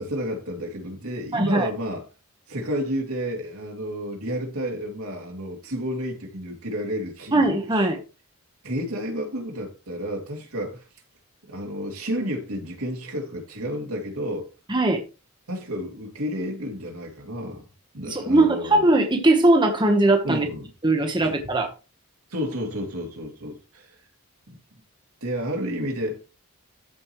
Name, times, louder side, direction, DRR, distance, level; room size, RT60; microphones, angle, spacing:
voice 1, 0.0-2.0 2.5-7.5 8.6-10.8 11.5-14.5 15.5-17.6 17.9-18.9 20.2-20.7 21.2-21.3 22.3-24.0 25.2-26.2, equal, 80° right, 2.8 m, -31 dB
voice 2, 1.3-1.7 7.3-8.0 14.7-15.0 18.1-20.5 20.8-21.7, right 2 dB, 20° right, 1.1 m, -20 dB
13.5 x 5.2 x 3.1 m
head